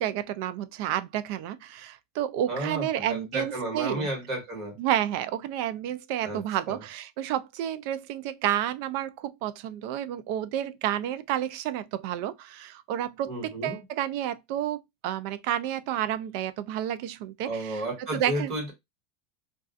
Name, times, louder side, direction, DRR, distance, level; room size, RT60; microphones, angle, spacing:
voice 1, 0.0-4.1 4.8-18.5, right 11 dB, 55° right, 0.3 m, -30 dB
voice 2, 2.5-4.7 6.2-6.8 13.3-13.8 17.4-18.7, right 1 dB, 25° right, 1.5 m, -33 dB
2.4 x 2.3 x 2.4 m
supercardioid pair, 155°, 0 cm